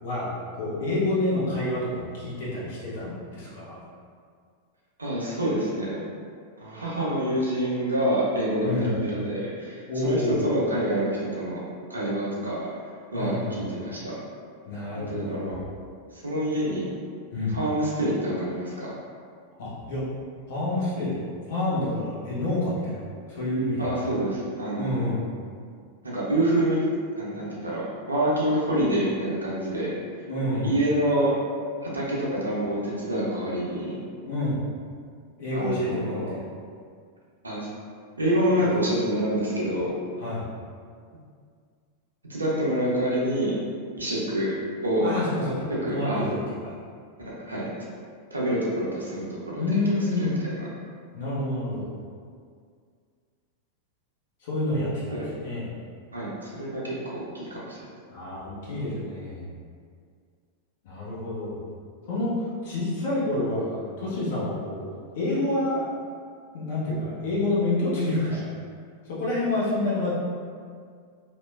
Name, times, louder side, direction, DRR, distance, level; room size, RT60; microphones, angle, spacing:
voice 1, 0.0-3.8 8.6-8.9 9.9-10.4 13.1-13.6 14.6-15.5 17.3-17.6 19.6-20.0 20.5-21.2 21.5-23.9 24.8-25.2 30.3-30.7 34.2-34.6 35.4-36.4 40.2-40.5 45.0-46.4 46.6-46.7 49.6-50.3 51.1-51.9 54.4-55.7 58.1-59.5 60.8-61.6 62.1-62.3 62.6-64.8 65.1-65.9 66.5-68.4 69.1-70.1, left 1 dB, 55° left, -7 dB, 0.9 m, -28 dB
voice 2, 5.0-6.1 6.6-11.6 11.9-12.6 13.1-14.1 14.9-15.6 16.1-16.9 17.5-18.9 23.8-25.1 26.0-26.8 27.2-29.9 30.6-31.3 31.8-34.0 35.5-36.3 37.4-37.7 38.2-39.9 42.3-43.5 44.0-44.5 44.8-45.1 45.8-46.2 47.2-47.7 48.3-49.8 50.2-50.6 55.1-55.3 56.1-57.8, right 1 dB, 80° right, -6 dB, 0.6 m, -27 dB
2.8 x 2.1 x 2.3 m, 2.1 s
figure-of-eight pair, 90°, 0 cm